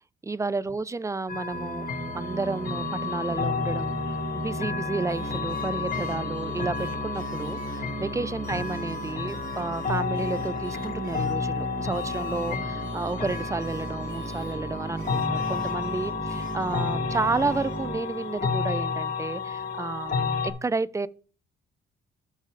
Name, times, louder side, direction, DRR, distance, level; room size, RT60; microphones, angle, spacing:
voice 1, 0.2-1.9 2.1-4.0 4.3-21.1, right 3 dB, 15° right, 0.5 m, -31 dB
sound 1, 1.3-20.5, left 5 dB, 45° left, 2.6 m, -32 dB
Musical instrument, 1.5-18.7, right 2 dB, 40° right, 1.8 m, -36 dB
Singing, 5.1-7.9 8.4-11.5 11.9-14.6 14.9-17.8, right 5 dB, 75° right, 2.8 m, -52 dB
8.9 x 5.5 x 5.0 m
cardioid pair, 90°, 20 cm